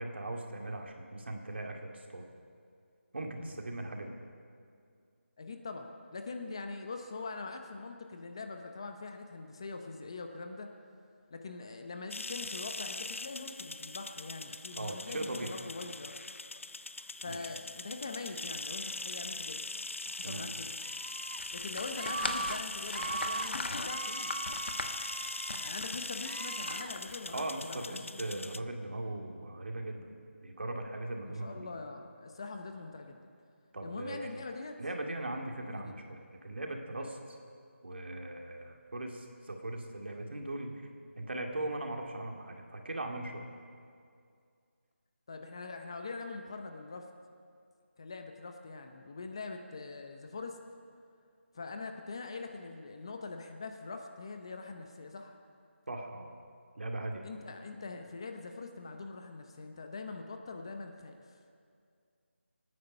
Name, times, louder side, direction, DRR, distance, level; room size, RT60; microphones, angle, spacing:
voice 1, 0.0-2.3 3.1-4.2 14.8-15.5 17.3-17.4 20.2-20.5 27.3-30.1 30.4-31.7 33.7-34.3 34.8-37.4 37.8-40.8 41.2-43.5 55.9-56.3 56.8-57.3, right 2 dB, 60° right, 2 dB, 2.3 m, -39 dB
voice 2, 5.4-10.7 11.3-16.1 17.2-19.7 20.1-20.8 21.5-24.5 25.5-28.7 31.3-33.3 33.8-34.8 35.6-36.0 45.3-47.1 48.0-50.6 51.5-55.4 57.2-61.4, left 3 dB, 25° left, 5 dB, 0.7 m, -43 dB
sound 1, 12.1-28.6, left 3 dB, 85° left, 0.6 m, -41 dB
Screaming, 20.8-21.4 21.9-22.6 22.9-23.5 23.8-25.7 26.2-26.9, right 3 dB, 40° right, 0.6 m, -40 dB
sound 2, 21.4-27.5, left 2 dB, 55° left, 1.2 m, -40 dB
25.0 x 9.7 x 5.5 m, 2.3 s
figure-of-eight pair, 175°, 7 cm